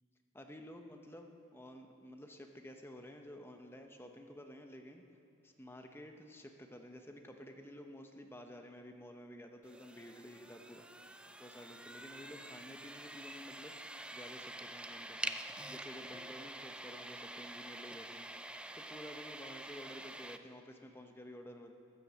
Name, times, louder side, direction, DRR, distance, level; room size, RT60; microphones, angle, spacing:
voice 1, 0.3-5.0 5.4-10.8 11.4-15.4 15.7-21.7, equal, 10° left, 4 dB, 0.8 m, -52 dB
sound 1, 9.6-20.4, right 1 dB, 5° right, 0.3 m, -47 dB
14.0 x 10.0 x 7.3 m, 2.8 s
head